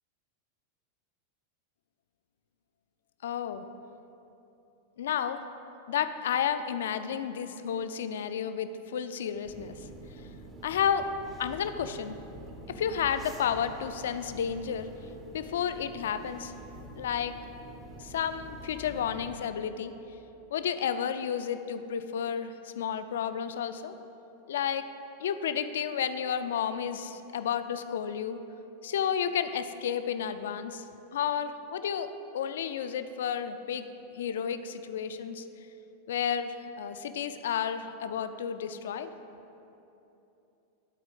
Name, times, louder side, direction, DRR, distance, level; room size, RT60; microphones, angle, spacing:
voice 1, 3.2-3.6 5.0-5.4 5.9-9.8 10.6-11.1 11.4-12.2 12.7-14.9 15.3-16.5 17.0-17.3 18.0-19.9 20.5-23.9 24.5-24.9 25.2-28.4 28.8-30.8 31.1-33.9 34.1-35.5 36.1-39.1, left 8 dB, 60° left, 10 dB, 0.3 m, -31 dB
sound 1, 9.4-19.4, right 1 dB, 25° right, 0.7 m, -46 dB
11.5 x 4.2 x 4.0 m, 2.9 s
figure-of-eight pair, 90°, 0 cm